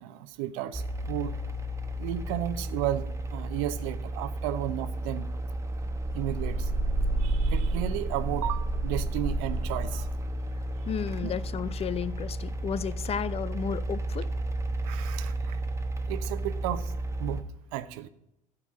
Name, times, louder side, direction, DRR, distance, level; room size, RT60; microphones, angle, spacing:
voice 1, 0.0-1.3 2.0-5.3 6.1-6.7 7.2-10.1 11.2-11.3 14.8-15.6 16.1-16.8 17.2-17.4 17.7-18.1, right 13 dB, 70° right, 0.8 m, -33 dB
sound 1, 0.7-17.4, right 1 dB, 15° right, 1.0 m, -31 dB
voice 2, 10.9-14.3, left 8 dB, 35° left, 0.6 m, -33 dB
12.5 x 4.6 x 7.5 m
hypercardioid pair, 75°, 18 cm